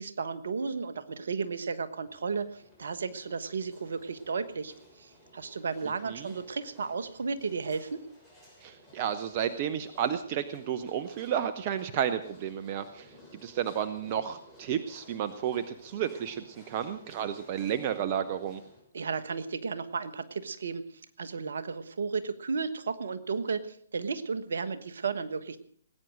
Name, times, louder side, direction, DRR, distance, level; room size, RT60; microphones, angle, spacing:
voice 1, 0.0-8.0 18.9-20.8 21.2-25.6, right 5 dB, 65° right, 12 dB, 1.3 m, -34 dB
sound 1, 2.0-18.8, equal, 10° right, 6.7 m, -56 dB
voice 2, 8.6-13.1 13.4-18.6, right 9 dB, 40° right, 12 dB, 0.8 m, -32 dB
19.5 x 9.4 x 6.4 m, 0.62 s
figure-of-eight pair, 130°, 0 cm